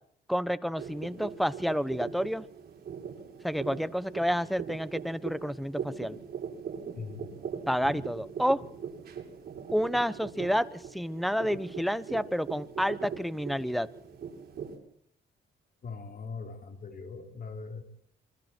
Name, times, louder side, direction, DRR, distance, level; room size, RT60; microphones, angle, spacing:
voice 1, 0.3-2.4 3.4-6.2 7.7-8.6 9.7-13.9, equal, ahead, 15 dB, 1.1 m, -29 dB
sound 1, 0.8-14.8, right 7 dB, 50° right, 7.6 m, -41 dB
voice 2, 6.9-7.3 15.8-17.8, left 4 dB, 50° left, 3 dB, 4.1 m, -41 dB
26.0 x 23.5 x 4.6 m, 0.66 s
cardioid pair, 90°, 20 cm